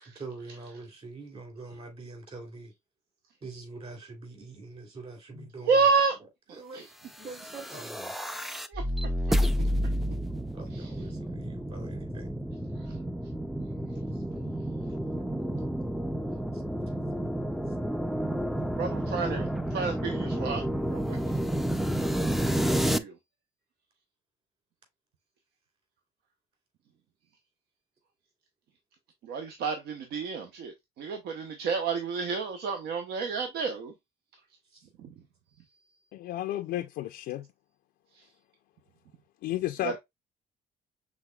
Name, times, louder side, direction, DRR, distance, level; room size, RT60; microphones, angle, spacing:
voice 1, 0.0-2.7 3.4-5.8 6.6-6.9 7.2-8.2 10.5-12.3 14.1-14.2 16.5-16.6 34.7-34.9, right 3 dB, 35° right, 3.0 m, -44 dB
voice 2, 5.6-6.2 6.7-6.8 8.7-8.8 9.3-9.4 10.7-10.9 12.8-13.0 18.8-21.2 22.6-23.1 29.2-33.9 35.0-35.1 38.1-38.2 39.8-39.9, right 5 dB, 70° right, 0.9 m, -30 dB
sound 1, 7.2-23.0, equal, ahead, 0.4 m, -30 dB
voice 3, 36.1-37.5 39.4-40.0, left 14 dB, 70° left, 0.5 m, -32 dB
6.3 x 3.5 x 2.3 m
cardioid pair, 110°, 17 cm